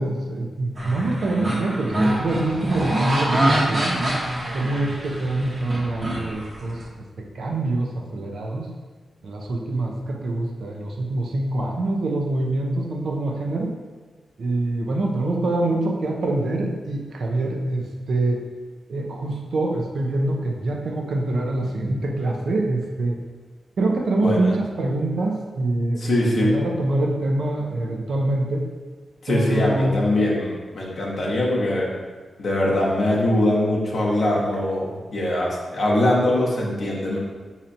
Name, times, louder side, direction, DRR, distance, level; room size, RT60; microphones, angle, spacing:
voice 1, 0.0-4.0 4.5-8.8 9.2-13.8 14.4-18.4 18.9-23.2 23.8-28.7 29.3-30.0, right 2 dB, 75° right, 1 dB, 0.5 m, -25 dB
sound 1, 0.8-6.8, right 1 dB, 50° right, 0.9 m, -25 dB
voice 2, 24.2-24.5 26.0-26.5 29.2-31.9 32.4-37.2, left 1 dB, 70° left, -4 dB, 0.7 m, -22 dB
4.3 x 2.8 x 2.6 m, 1.4 s
cardioid pair, 55°, 0 cm